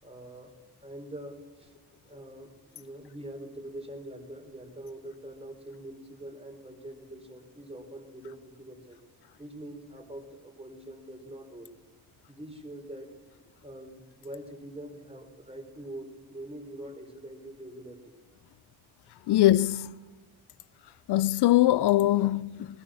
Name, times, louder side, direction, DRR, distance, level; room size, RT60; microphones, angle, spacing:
voice 1, 0.0-1.7 2.0-9.0 9.4-11.7 12.3-13.2 13.6-18.2, right 1 dB, 15° right, 4.1 m, -44 dB
voice 2, 19.3-19.9 21.1-22.7, left 15 dB, 75° left, 0.5 m, -22 dB
22.5 x 18.5 x 6.4 m
cardioid pair, 70°, 40 cm